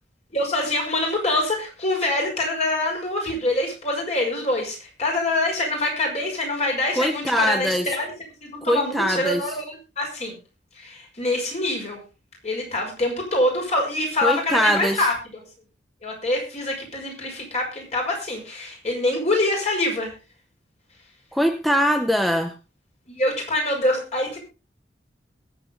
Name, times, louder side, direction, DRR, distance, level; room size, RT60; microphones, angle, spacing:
voice 1, 0.3-8.1 8.4-10.4 10.8-12.0 12.4-15.4 16.0-20.1 23.1-24.4, left 2 dB, 40° left, 1 dB, 6.0 m, -25 dB
voice 2, 7.0-8.0 8.7-9.4 14.2-15.0 21.3-22.5, equal, ahead, 7 dB, 0.8 m, -22 dB
21.5 x 8.0 x 3.8 m, 0.30 s
head